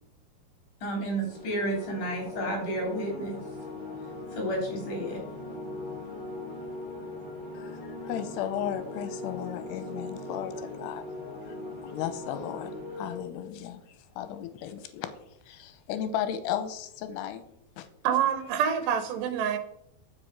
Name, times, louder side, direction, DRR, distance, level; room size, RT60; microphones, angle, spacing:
voice 1, 0.8-3.4 4.3-5.2, right 1 dB, 50° left, 0 dB, 4.4 m, -31 dB
sound 1, 1.3-13.2, left 2 dB, 5° left, 2.9 m, -40 dB
voice 2, 7.5-11.0 11.4-11.6 11.8-15.1 15.5-17.4 17.8-17.9, left 10 dB, 90° left, 10 dB, 2.9 m, -35 dB
voice 3, 18.0-19.6, right 8 dB, 85° right, 9 dB, 3.3 m, -26 dB
9.8 x 7.5 x 5.3 m, 0.74 s
omnidirectional pair, 4.8 m